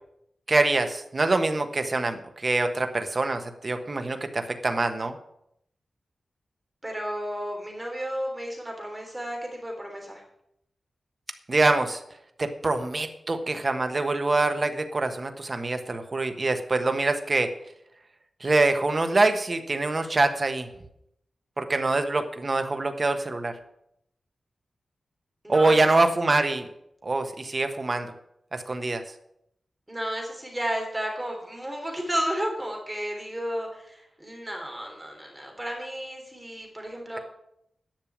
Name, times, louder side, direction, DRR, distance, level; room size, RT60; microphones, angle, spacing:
voice 1, 0.5-5.1 11.5-12.0 12.4-17.5 18.4-20.7 21.6-23.5 25.5-26.7 27.0-28.1 28.5-29.0, right 2 dB, 35° right, 7 dB, 1.3 m, -25 dB
voice 2, 6.8-10.2 25.4-25.7 29.9-37.2, equal, 10° right, 1 dB, 3.4 m, -32 dB
10.5 x 6.7 x 8.6 m, 0.76 s
wide cardioid pair, 125°, 0 cm